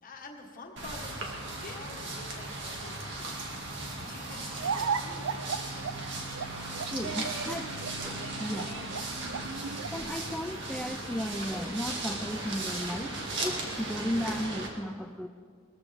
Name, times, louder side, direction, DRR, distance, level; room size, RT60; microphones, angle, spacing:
voice 1, 0.0-3.4 3.8-6.0 6.7-7.4 8.6-9.6, left 2 dB, 40° left, 2 dB, 1.6 m, -48 dB
sound 1, 0.8-14.7, right 2 dB, 60° right, 2.1 m, -37 dB
sound 2, 4.5-10.0, right 6 dB, 75° right, 0.5 m, -36 dB
voice 2, 6.9-8.7 9.9-13.1 13.4-15.3, equal, 5° left, 10 dB, 0.4 m, -35 dB
21.0 x 14.0 x 3.5 m, 2.1 s
head